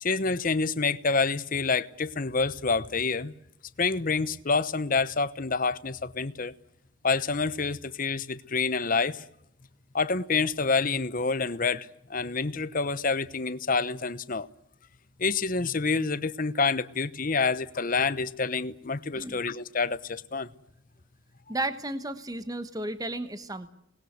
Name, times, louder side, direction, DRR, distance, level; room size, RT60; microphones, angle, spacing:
voice 1, 0.0-3.3 3.8-6.5 7.0-9.2 9.9-14.5 15.2-20.5, left 4 dB, 40° left, 0.9 m, -27 dB
voice 2, 21.5-23.7, right 1 dB, 15° right, 1.2 m, -33 dB
27.5 x 20.5 x 8.1 m
head